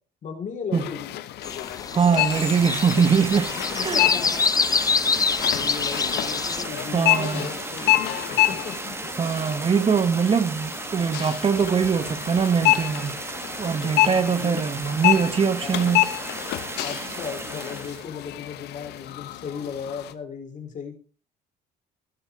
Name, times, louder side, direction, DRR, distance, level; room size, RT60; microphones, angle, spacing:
voice 1, 0.2-1.1 3.5-4.4 5.5-8.2 8.5-9.0 14.1-14.6 15.6-15.7 16.8-21.0, left 6 dB, 50° left, 4.7 m, -36 dB
sound 1, 0.7-20.1, left 15 dB, 75° left, 1.1 m, -28 dB
sound 2, 1.4-6.6, left 5 dB, 20° left, 0.5 m, -26 dB
voice 2, 1.9-3.5 3.8-4.0 6.9-7.5 9.2-13.2 13.6-16.1, right 6 dB, 35° right, 1.1 m, -22 dB
sound 3, 2.3-18.1, right 2 dB, 15° right, 1.9 m, -35 dB
20.0 x 7.1 x 4.9 m
cardioid pair, 110°, 17 cm